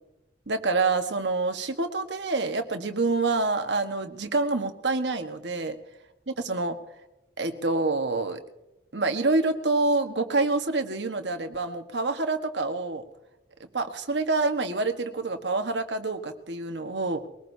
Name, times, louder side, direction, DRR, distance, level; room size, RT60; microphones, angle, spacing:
voice 1, 0.5-5.8 6.4-6.8 7.4-8.4 8.9-13.0 13.7-17.3, right 3 dB, 85° right, 6 dB, 1.4 m, -27 dB
22.5 x 18.5 x 2.8 m, 0.94 s
head